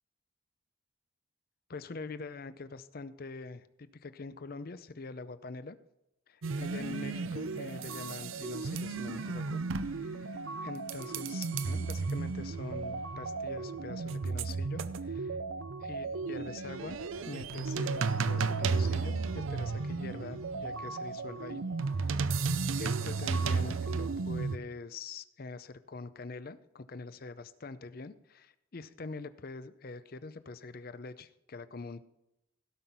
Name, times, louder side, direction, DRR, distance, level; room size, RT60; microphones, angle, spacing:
voice 1, 1.7-5.8 6.3-15.4 15.8-17.0 17.3-21.6 21.9-22.4 22.8-32.0, left 3 dB, 45° left, 13 dB, 0.6 m, -44 dB
sound 1, 6.4-24.6, right 4 dB, 75° right, 0.6 m, -34 dB
17.0 x 5.8 x 5.4 m, 0.88 s
head